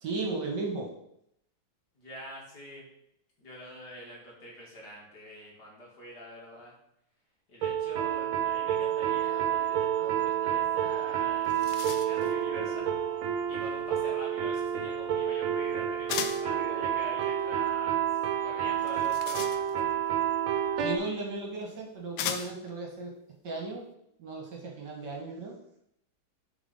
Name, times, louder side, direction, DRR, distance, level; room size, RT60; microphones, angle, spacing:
voice 1, 0.0-0.9 20.8-23.1 23.4-23.9 24.2-25.6, right 3 dB, 55° right, 0 dB, 2.0 m, -35 dB
voice 2, 2.0-2.9 3.4-6.7 7.5-12.9 13.5-18.0 18.4-20.2, equal, 50° left, -3 dB, 2.7 m, -45 dB
sound 1, 7.6-21.0, right 9 dB, 80° right, 1.6 m, -29 dB
sound 2, 11.0-11.1 11.3-12.3 16.1-16.5 18.8-20.0 21.1-21.2 22.2-22.7, left 9 dB, 90° left, 1.6 m, -37 dB
7.0 x 4.8 x 5.5 m, 0.75 s
omnidirectional pair, 2.3 m